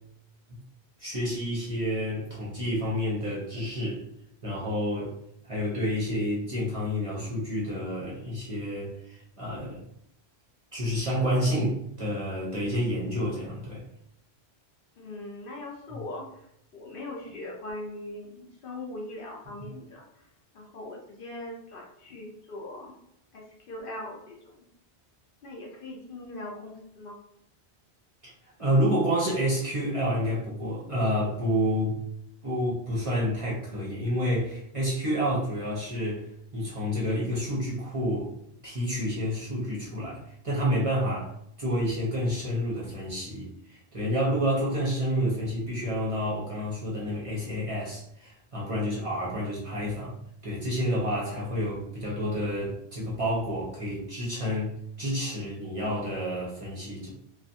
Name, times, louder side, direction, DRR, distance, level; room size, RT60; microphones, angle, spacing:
voice 1, 1.0-4.0 4.4-5.1 5.4-9.8 10.7-13.8 15.9-16.0 28.2-28.3 28.6-32.0 32.4-36.3 36.5-38.3 38.6-41.3 41.6-50.1 50.4-54.7 55.0-57.1, equal, 35° right, -6 dB, 0.7 m, -29 dB
voice 2, 15.0-20.3 20.5-23.0 23.3-24.6 25.4-27.2, left 1 dB, 60° left, -2 dB, 0.7 m, -41 dB
2.5 x 2.4 x 2.6 m, 0.74 s
omnidirectional pair, 1.1 m